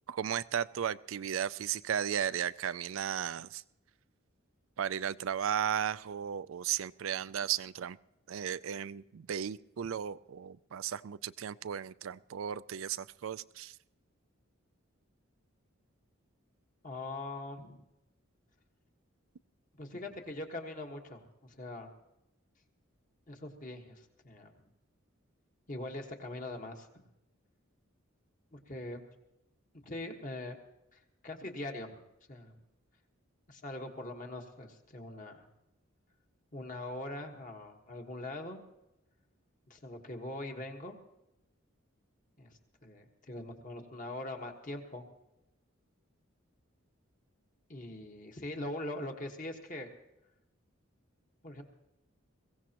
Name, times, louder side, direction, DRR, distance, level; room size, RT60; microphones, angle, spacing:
voice 1, 0.1-3.6 4.8-8.0 8.3-13.8, right 9 dB, 75° right, 17 dB, 0.4 m, -35 dB
voice 2, 16.8-17.8 19.8-21.9 23.3-24.5 25.7-26.9 28.5-29.0 29.8-30.6 30.9-32.0 32.3-32.5 33.5-35.5 36.5-38.6 39.7-40.9 42.4-42.5 42.8-45.0 47.7-49.9 51.4-51.6, left 1 dB, 40° left, 3 dB, 1.5 m, -42 dB
22.0 x 16.5 x 3.0 m, 0.93 s
head